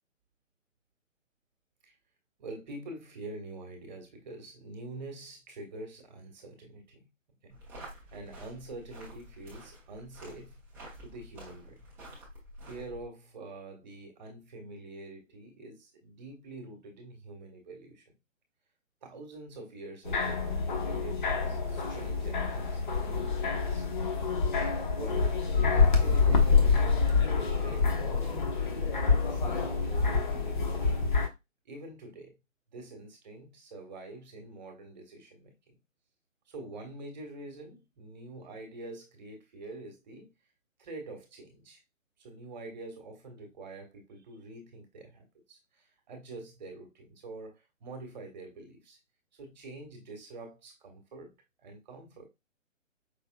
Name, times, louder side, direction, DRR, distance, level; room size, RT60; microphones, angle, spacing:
voice 1, 2.4-7.0 7.4-7.6 8.1-10.6 11.0-11.9 12.6-18.0 19.0-23.8 24.5-26.8 27.3-28.6 29.1-31.1 31.6-32.3 32.7-35.7 36.5-40.3 40.8-41.8 42.2-49.0 49.3-51.3 51.6-52.2, right 2 dB, 35° right, 1.4 m, -46 dB
sound 1, 7.5-13.1, equal, 5° right, 0.8 m, -49 dB
sound 2, 20.0-31.3, left 4 dB, 40° left, 1.1 m, -27 dB
5.6 x 3.3 x 2.2 m
figure-of-eight pair, 140°, 39 cm